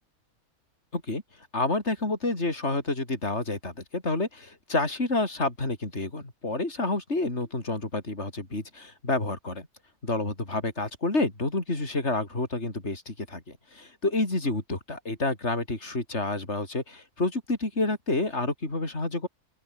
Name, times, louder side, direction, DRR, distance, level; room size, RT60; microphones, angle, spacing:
voice 1, 1.5-9.7 10.0-19.3, left 2 dB, 45° left, 5.4 m, -29 dB
open air
omnidirectional pair, 1.6 m